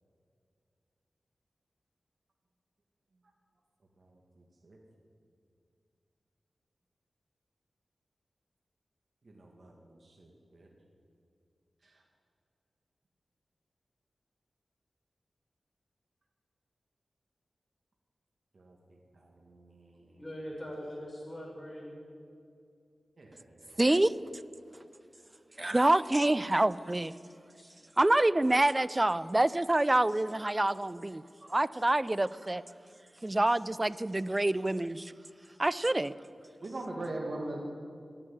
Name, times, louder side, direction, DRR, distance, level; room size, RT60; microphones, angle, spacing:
voice 1, 4.0-4.8 9.2-10.7 11.8-11.9 18.5-20.2 23.2-23.8 36.6-37.6, right 2 dB, 55° right, 2.1 m, -43 dB
voice 2, 20.2-21.9 27.5-27.7 36.9-37.2, equal, 20° left, 5.3 m, -42 dB
voice 3, 23.8-24.1 25.6-27.1 28.0-31.2 31.5-32.6 33.2-35.1 35.6-36.1, right 1 dB, 25° right, 0.4 m, -26 dB
12.0 x 11.0 x 10.0 m
wide cardioid pair, 70°, 0 cm